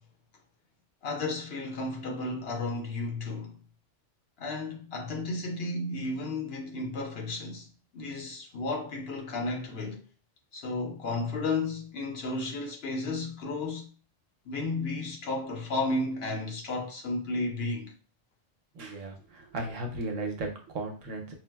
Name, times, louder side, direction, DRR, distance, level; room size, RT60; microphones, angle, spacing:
voice 1, 1.0-3.6 4.4-7.7 7.9-10.0 10.5-13.9 14.4-17.9, left 2 dB, 60° left, 0.9 m, -33 dB
voice 2, 18.7-21.3, right 2 dB, 90° right, 1.1 m, -36 dB
4.6 x 2.0 x 2.2 m
omnidirectional pair, 1.2 m